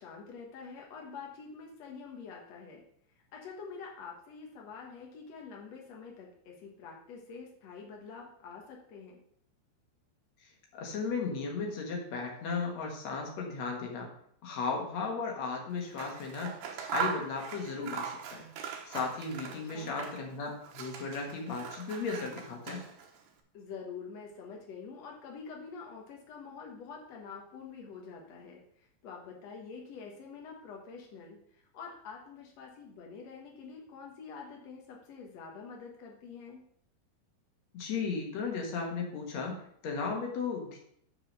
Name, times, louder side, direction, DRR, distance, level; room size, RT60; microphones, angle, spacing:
voice 1, 0.0-2.8 3.3-9.2 19.7-19.9 23.5-28.6 29.0-31.4 31.7-36.6, left 5 dB, 80° left, -1 dB, 1.5 m, -46 dB
voice 2, 10.4-14.1 14.4-16.6 16.8-18.5 18.9-22.8 37.7-40.8, left 4 dB, 60° left, 0 dB, 1.9 m, -35 dB
Scissors, 15.8-20.3 20.6-23.2, right 7 dB, 70° right, 2.5 m, -40 dB
8.7 x 4.8 x 6.5 m, 0.66 s
omnidirectional pair, 5.2 m